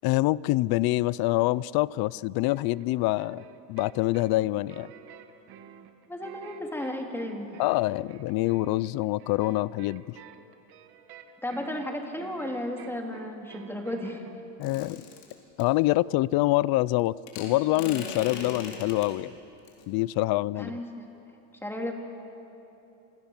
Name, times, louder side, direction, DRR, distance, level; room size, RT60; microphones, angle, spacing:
voice 1, 0.0-3.4 3.7-4.9 7.6-10.2 14.6-15.0 15.6-19.3 19.9-20.8, left 18 dB, 55° left, 22 dB, 0.5 m, -26 dB
sound 1, 2.4-14.4, right 9 dB, 60° right, 2.0 m, -51 dB
voice 2, 6.1-7.6 11.4-14.2 20.6-21.1 21.6-21.9, left 1 dB, 5° left, 1 dB, 3.0 m, -34 dB
sound 2, 14.6-15.6 17.3-19.1 19.7-19.9, left 5 dB, 90° left, 5.0 m, -39 dB
27.5 x 26.5 x 7.2 m, 3.0 s
cardioid pair, 145°, 44 cm